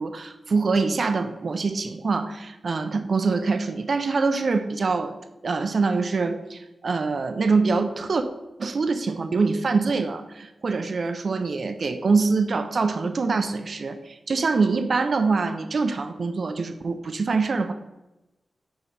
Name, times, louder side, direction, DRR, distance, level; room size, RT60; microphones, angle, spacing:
voice 1, 0.0-8.2 8.6-17.7, right 4 dB, 50° right, 8 dB, 0.4 m, -24 dB
5.8 x 4.7 x 3.9 m, 1.0 s
wide cardioid pair, 145°, 0 cm